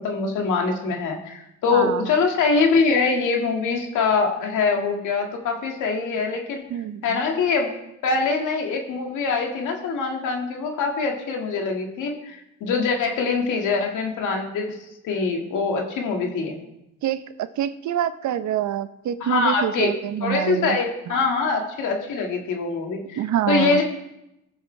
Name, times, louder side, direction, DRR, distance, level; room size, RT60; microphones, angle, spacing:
voice 1, 0.0-6.7 7.0-7.7 8.0-14.8 15.0-16.6 19.2-19.9 20.2-23.2 23.5-23.8, left 4 dB, 85° left, 2 dB, 1.9 m, -23 dB
voice 2, 1.7-2.1 6.7-7.2 17.0-17.2 17.6-20.8 21.1-21.2 23.2-23.8, right 11 dB, 70° right, 12 dB, 0.8 m, -26 dB
19.5 x 7.3 x 3.2 m, 0.88 s
cardioid pair, 90°, 30 cm